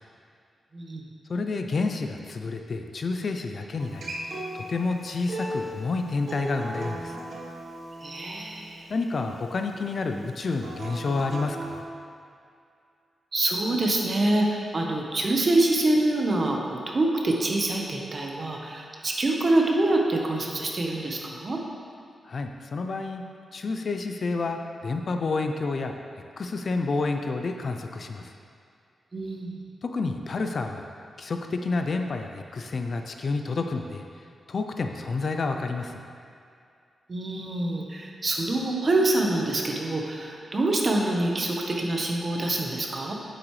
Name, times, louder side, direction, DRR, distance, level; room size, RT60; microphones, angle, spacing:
voice 1, 1.3-7.2 8.9-11.8 22.3-23.2 23.5-25.9 26.4-28.3 29.8-30.9 31.2-34.0 34.5-36.0, left 3 dB, 50° left, 5 dB, 0.5 m, -29 dB
Acoustic guitar, 3.8-9.0 10.6-11.8, right 1 dB, 60° right, 1.4 m, -36 dB
voice 2, 8.0-8.8 13.3-21.6 29.1-29.6 37.1-43.1, right 2 dB, 35° right, 0 dB, 1.1 m, -25 dB
8.8 x 7.9 x 3.3 m, 2.4 s
wide cardioid pair, 110°, 0 cm